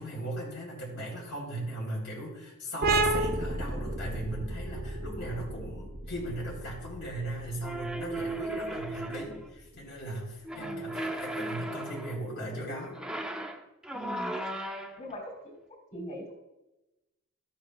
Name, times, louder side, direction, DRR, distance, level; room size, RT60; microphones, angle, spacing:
voice 1, 0.0-13.0, right 1 dB, 65° left, -4 dB, 3.7 m, -38 dB
sound 1, 2.8-10.1, right 2 dB, 45° right, 0.7 m, -33 dB
sound 2, 7.6-9.5 10.4-12.2 12.9-15.1, right 1 dB, 5° right, 0.6 m, -36 dB
voice 2, 10.5-11.0 13.9-14.4 15.0-15.4 15.9-16.3, equal, 35° left, -2 dB, 3.8 m, -41 dB
14.0 x 9.7 x 2.3 m, 0.97 s
head